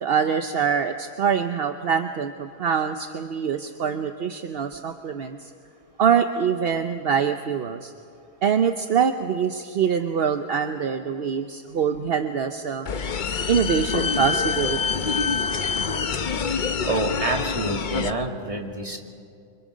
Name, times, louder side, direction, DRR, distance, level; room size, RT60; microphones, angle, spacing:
voice 1, 0.0-5.5 6.0-7.9 8.4-12.9 13.5-15.2, right 7 dB, 65° right, 7 dB, 1.0 m, -24 dB
sound 1, 12.9-18.1, left 5 dB, 50° left, 0.9 m, -26 dB
voice 2, 16.9-19.0, right 2 dB, 30° right, 1 dB, 2.2 m, -27 dB
29.0 x 25.5 x 5.2 m, 2.4 s
omnidirectional pair, 1.1 m